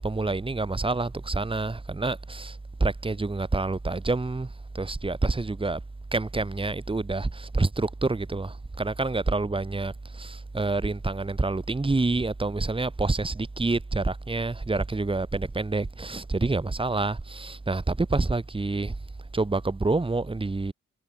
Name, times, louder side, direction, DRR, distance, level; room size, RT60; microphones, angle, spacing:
voice 1, 0.0-5.8 6.1-18.9 19.3-20.7, right 3 dB, 15° right, 0.8 m, -27 dB
wide cardioid pair, 110°, 30 cm